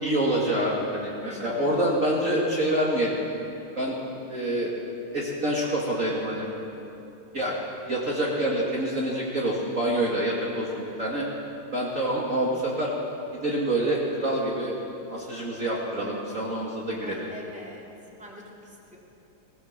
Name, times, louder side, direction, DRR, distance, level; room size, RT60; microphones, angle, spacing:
voice 1, 0.0-3.2 3.8-4.0 4.3-4.7 5.1-6.5 7.3-7.5 7.9-11.2 11.7-12.9 13.3-14.7 15.1-17.3, right 1 dB, 40° right, -4 dB, 2.5 m, -26 dB
voice 2, 1.2-1.7 17.0-17.9 18.2-18.4 18.9-19.0, equal, 5° right, -3 dB, 3.1 m, -43 dB
19.0 x 19.0 x 7.4 m, 2.8 s
omnidirectional pair, 2.3 m